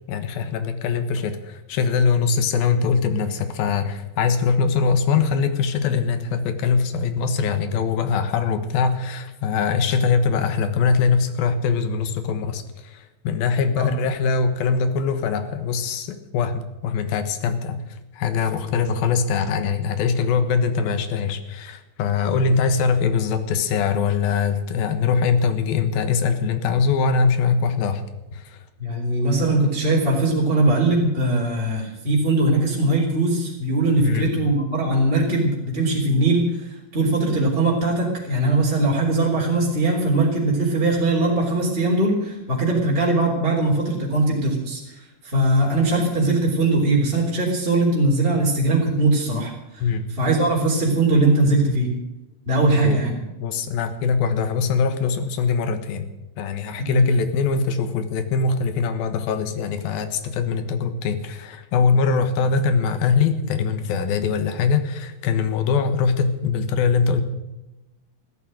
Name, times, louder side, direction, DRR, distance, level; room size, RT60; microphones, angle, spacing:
voice 1, 0.1-17.8 18.1-28.0 28.3-28.6 34.0-34.3 49.8-50.1 52.6-53.0 53.4-67.2, left 5 dB, 90° left, 9 dB, 3.2 m, -22 dB
voice 2, 28.8-49.8 50.2-51.9 52.5-53.1 56.8-57.1, right 2 dB, 15° right, -3 dB, 3.4 m, -20 dB
15.0 x 13.0 x 6.4 m, 1.0 s
omnidirectional pair, 4.2 m